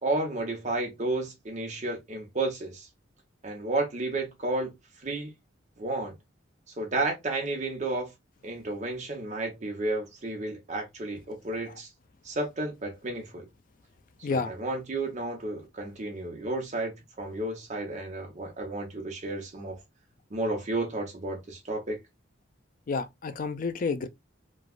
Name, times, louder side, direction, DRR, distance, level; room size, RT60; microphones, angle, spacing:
voice 1, 0.0-2.9 3.4-4.7 5.0-5.3 5.8-6.1 6.8-8.1 8.4-11.9 12.2-13.4 14.3-19.8 20.3-22.0, right 2 dB, 35° right, 1.0 m, -32 dB
voice 2, 22.9-24.1, left 4 dB, 45° left, 0.4 m, -30 dB
3.2 x 2.3 x 2.3 m
head